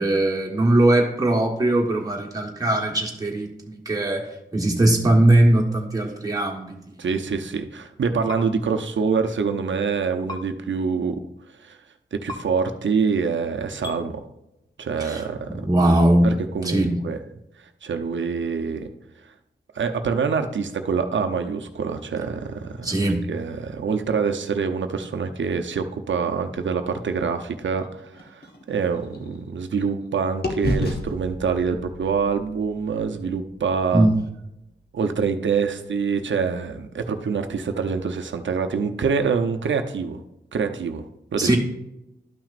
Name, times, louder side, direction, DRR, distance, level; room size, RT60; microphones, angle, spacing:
voice 1, 0.0-6.8 15.0-16.3 16.6-17.0 22.8-23.2 33.9-34.1 41.4-41.6, right 1 dB, 20° right, -1 dB, 1.4 m, -20 dB
voice 2, 7.0-11.2 11.6-11.8 12.1-14.2 14.8-15.5 16.2-17.2 17.8-18.9 19.7-34.1 34.9-40.2 40.5-41.5, right 5 dB, 85° right, 7 dB, 0.7 m, -25 dB
sound 1, 8.3-8.4 10.3-10.4 12.3-12.4 13.8-14.0, left 3 dB, 20° left, 1.0 m, -34 dB
sound 2, 27.7-30.1 30.4-34.4, left 1 dB, 55° left, 1.1 m, -33 dB
12.0 x 6.0 x 2.5 m, 0.87 s
wide cardioid pair, 125°, 19 cm